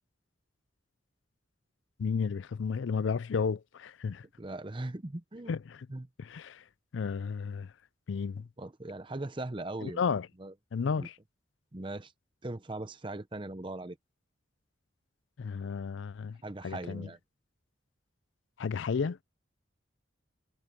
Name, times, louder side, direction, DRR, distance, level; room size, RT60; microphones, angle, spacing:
voice 1, 2.0-4.2 5.5-5.9 6.2-6.6 6.9-7.7 8.1-8.5 9.8-10.3 10.7-11.1 15.4-16.4 16.6-17.1 18.6-19.2, left 5 dB, 70° left, 0.4 m, -32 dB
voice 2, 4.4-5.5 5.9-6.1 8.6-10.0 10.4-10.5 11.0-11.1 11.7-12.1 12.4-14.0 16.4-17.2, right 2 dB, 25° right, 0.7 m, -39 dB
head